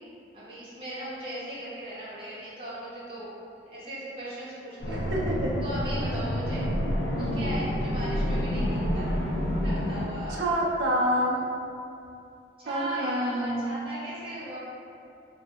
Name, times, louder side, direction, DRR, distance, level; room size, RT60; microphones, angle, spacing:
voice 1, 0.3-3.3 3.7-5.0 5.6-6.6 7.2-9.1 9.6-10.6 12.6-14.6, equal, 30° right, -11 dB, 0.6 m, -38 dB
sound 1, 4.8-10.1, equal, 70° left, 0.4 m, -28 dB
voice 2, 4.9-5.5 7.2-7.5 10.3-11.4 12.7-13.8, right 1 dB, 70° right, -3 dB, 0.4 m, -28 dB
2.7 x 2.0 x 2.2 m, 2.6 s
head